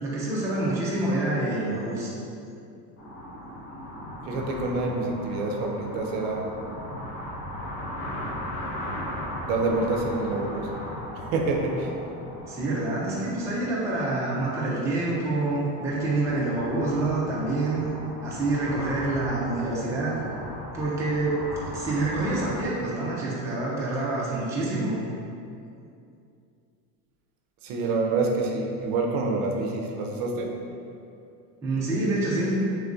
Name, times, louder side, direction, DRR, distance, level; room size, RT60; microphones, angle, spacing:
voice 1, 0.0-2.1 12.5-17.8 18.2-20.2 20.7-21.4 21.7-25.0 31.6-32.6, right 2 dB, 10° right, -7 dB, 0.3 m, -27 dB
sound 1, 3.0-22.6, equal, 35° left, 0.8 m, -38 dB
voice 2, 4.3-6.5 9.4-10.8 11.2-11.9 27.6-30.6, right 3 dB, 65° right, 1 dB, 0.5 m, -27 dB
3.0 x 2.4 x 3.6 m, 2.6 s
cardioid pair, 145°, 38 cm